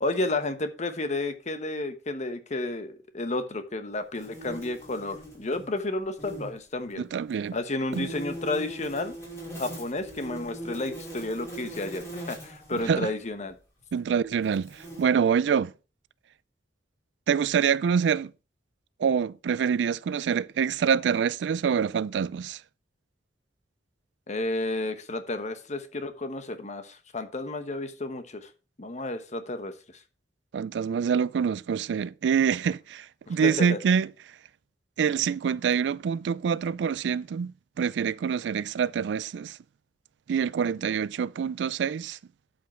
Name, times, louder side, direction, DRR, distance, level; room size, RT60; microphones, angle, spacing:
voice 1, 0.0-7.1 7.5-9.2 9.6-13.6 24.3-28.5 28.8-30.0 33.3-33.8, left 2 dB, 40° left, 1.1 m, -32 dB
sound 1, 4.1-5.7 6.0-6.5 7.9-12.9 13.8-13.9 14.4-15.0, right 1 dB, 15° left, 6.0 m, -40 dB
voice 2, 7.0-7.6 7.9-8.1 12.9-13.1 13.9-15.7 17.3-18.3 19.0-22.6 30.5-34.1 35.0-39.6 40.3-42.2, right 7 dB, 70° right, 0.3 m, -26 dB
11.5 x 5.3 x 4.4 m
head